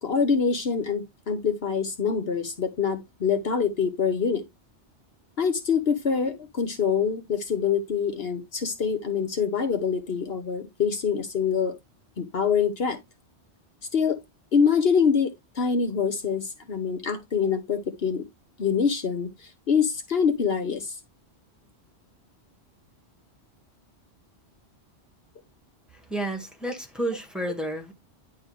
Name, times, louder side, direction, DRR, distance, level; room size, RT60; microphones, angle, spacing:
voice 1, 0.0-4.4 5.4-11.8 12.2-13.0 13.9-14.2 14.5-18.2 18.6-19.3 19.7-20.9, left 6 dB, 65° left, 1.2 m, -25 dB
voice 2, 25.9-27.9, right 1 dB, ahead, 1.7 m, -31 dB
10.5 x 3.8 x 3.2 m
omnidirectional pair, 1.1 m